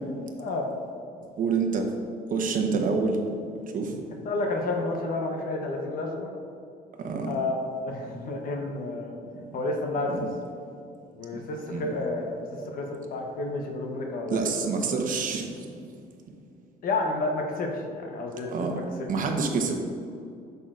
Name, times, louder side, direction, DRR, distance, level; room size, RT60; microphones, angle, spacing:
voice 1, 0.4-0.7 4.2-6.3 7.3-9.2 9.5-10.3 11.1-14.5 16.8-18.8, left 2 dB, 60° left, 2 dB, 0.9 m, -30 dB
voice 2, 1.4-1.8 2.3-3.2 3.7-3.9 7.0-7.3 10.1-10.2 11.7-11.9 14.3-15.5 18.5-18.7 19.1-19.8, right 5 dB, 50° right, 3 dB, 1.0 m, -27 dB
8.6 x 6.8 x 2.5 m, 2.4 s
cardioid pair, 110°, 17 cm